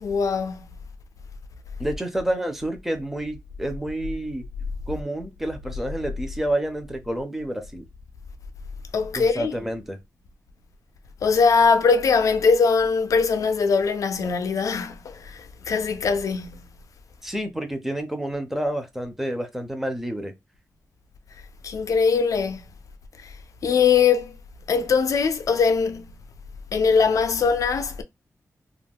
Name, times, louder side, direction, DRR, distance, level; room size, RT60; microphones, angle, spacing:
voice 1, 0.0-0.7 8.9-9.6 11.2-16.7 21.6-22.6 23.2-23.3 23.6-24.4 24.7-26.1 26.7-28.0, left 5 dB, 70° left, 0.4 m, -21 dB
voice 2, 1.8-4.5 4.9-7.9 9.1-10.0 17.2-20.3, right 1 dB, 5° right, 0.5 m, -29 dB
2.3 x 2.1 x 3.4 m
wide cardioid pair, 160°, 6 cm